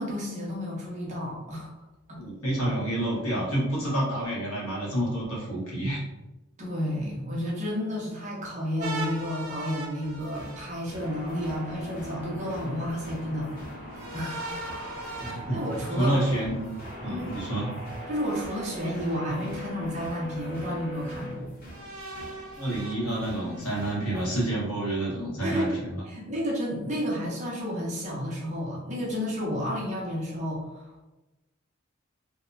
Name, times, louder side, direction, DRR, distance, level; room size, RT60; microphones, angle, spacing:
voice 1, 0.0-1.7 2.1-2.2 6.6-14.6 15.2-16.2 17.1-17.4 18.1-21.5 25.4-31.0, equal, 35° right, -4 dB, 0.7 m, -31 dB
voice 2, 2.2-6.0 15.2-16.6 17.0-17.7 22.6-26.0, right 1 dB, 90° left, -6 dB, 1.1 m, -29 dB
sound 1, 8.8-11.5 13.9-16.9 18.2-19.2 19.9-20.0 21.6-23.6, right 2 dB, 70° right, 0.4 m, -40 dB
sound 2, 10.0-24.5, equal, 40° left, 0.7 m, -48 dB
sound 3, 11.0-21.3, equal, 65° left, 0.9 m, -41 dB
2.8 x 2.1 x 2.5 m, 1.0 s
head